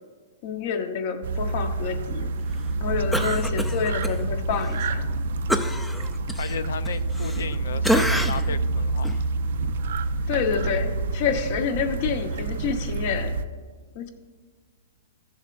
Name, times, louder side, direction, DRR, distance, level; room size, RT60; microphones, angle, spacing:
voice 1, 0.4-2.3 2.8-5.1 10.3-13.3 13.9-14.1, left 6 dB, 45° left, 1.0 m, -28 dB
sound 1, 1.2-13.4, right 3 dB, 65° right, 0.5 m, -27 dB
voice 2, 3.1-3.5 6.2-9.2, left 7 dB, 85° left, 0.5 m, -34 dB
Cough, 3.1-4.2 4.5-4.7 5.5-7.5 7.8-8.6 9.0-9.2, equal, 5° left, 0.4 m, -27 dB
15.0 x 7.1 x 2.5 m
hypercardioid pair, 150°, 0 cm